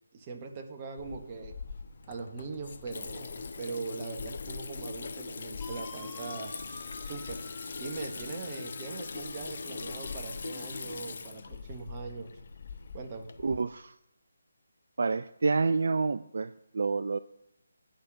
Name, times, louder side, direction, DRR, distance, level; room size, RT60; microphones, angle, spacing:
voice 1, 0.1-1.6 2.1-6.5 7.0-7.4 7.8-12.3 12.9-13.3, right 4 dB, 25° right, 3 dB, 1.4 m, -41 dB
Water tap faucet / Sink (filling or washing), 1.0-13.6, left 4 dB, 50° left, 0.8 m, -41 dB
sound 1, 5.6-11.4, left 2 dB, 10° left, 1.9 m, -51 dB
voice 2, 13.4-13.9 15.0-17.2, right 4 dB, 55° right, 12 dB, 0.4 m, -28 dB
8.9 x 5.7 x 8.0 m, 0.78 s
figure-of-eight pair, 150°, 0 cm